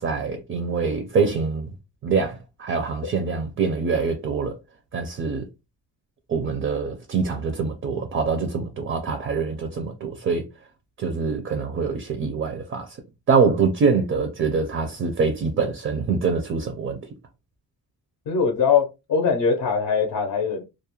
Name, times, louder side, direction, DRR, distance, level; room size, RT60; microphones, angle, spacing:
voice 1, 0.0-1.7 2.0-4.6 4.9-5.4 6.3-10.5 11.0-13.0 13.3-17.0, right 5 dB, 35° right, 0.4 m, -24 dB
voice 2, 18.3-20.6, left 6 dB, 55° left, 0.6 m, -22 dB
2.3 x 2.1 x 2.9 m
cardioid pair, 150°, 36 cm